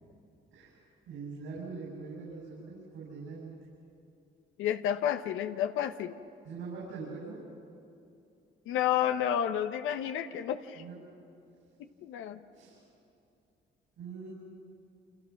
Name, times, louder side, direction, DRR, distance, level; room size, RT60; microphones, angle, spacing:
voice 1, 0.5-3.5 6.4-7.4 10.8-11.0 12.5-12.8 14.0-14.3, right 4 dB, 85° right, -4 dB, 7.8 m, -43 dB
voice 2, 4.6-6.2 8.7-10.8 11.8-12.4, left 10 dB, 90° left, 9 dB, 1.0 m, -31 dB
28.5 x 26.5 x 6.0 m, 2.6 s
cardioid pair, 90°, 20 cm